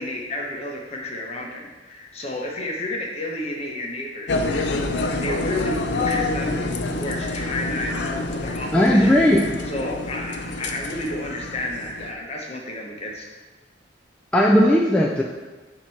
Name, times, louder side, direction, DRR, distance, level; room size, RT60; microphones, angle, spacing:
voice 1, 0.0-13.3, left 1 dB, 35° left, -1 dB, 1.0 m, -31 dB
sound 1, 4.3-12.1, left 2 dB, 70° left, 0.5 m, -27 dB
voice 2, 8.7-9.5 14.3-15.2, equal, 5° left, -3 dB, 0.4 m, -16 dB
7.3 x 2.9 x 5.7 m, 1.2 s
head